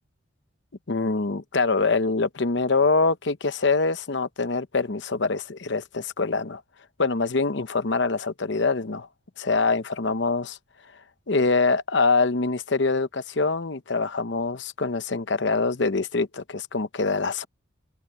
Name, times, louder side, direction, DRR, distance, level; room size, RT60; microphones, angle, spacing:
voice 1, 0.9-6.6 7.0-9.1 9.4-10.6 11.3-17.5, left 3 dB, 60° left, 0.9 m, -24 dB
open air
head